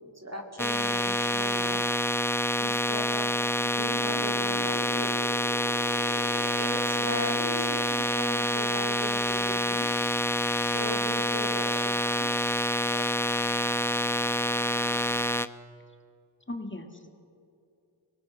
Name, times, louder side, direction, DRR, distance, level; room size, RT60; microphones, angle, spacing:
voice 1, 0.1-1.8 2.6-3.3 3.7-5.1 6.6-9.9 10.6-12.3, equal, 35° right, 2 dB, 2.7 m, -38 dB
sound 1, 0.6-15.5, left 1 dB, 5° left, 0.8 m, -27 dB
sound 2, 3.5-7.9, left 3 dB, 80° left, 2.4 m, -42 dB
voice 2, 16.5-17.1, left 1 dB, 25° left, 5 dB, 2.2 m, -40 dB
25.0 x 19.5 x 6.4 m, 2.6 s
wide cardioid pair, 50°, 47 cm